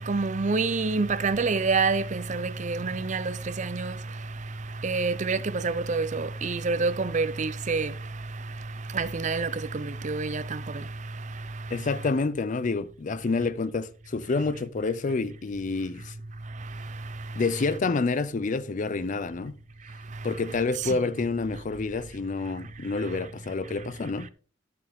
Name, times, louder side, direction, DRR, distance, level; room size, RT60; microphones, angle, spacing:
voice 1, 0.0-4.2 4.8-8.1 8.9-10.9 11.3-11.5 20.8-21.0, right 4 dB, 40° right, 0.6 m, -27 dB
voice 2, 11.7-16.1 17.3-19.6 20.2-24.3, left 3 dB, 40° left, 0.4 m, -28 dB
10.5 x 6.7 x 3.6 m
head